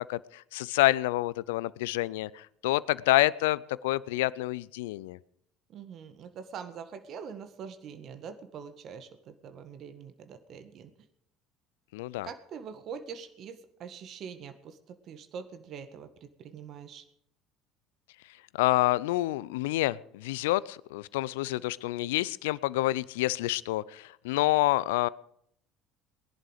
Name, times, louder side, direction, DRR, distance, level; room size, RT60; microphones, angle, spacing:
voice 1, 0.0-5.2 11.9-12.3 18.5-25.1, left 17 dB, 75° left, 21 dB, 0.5 m, -28 dB
voice 2, 5.7-10.9 12.2-17.0, right 7 dB, 50° right, 10 dB, 1.7 m, -44 dB
20.5 x 11.0 x 5.0 m, 0.73 s
hypercardioid pair, 65°, 0 cm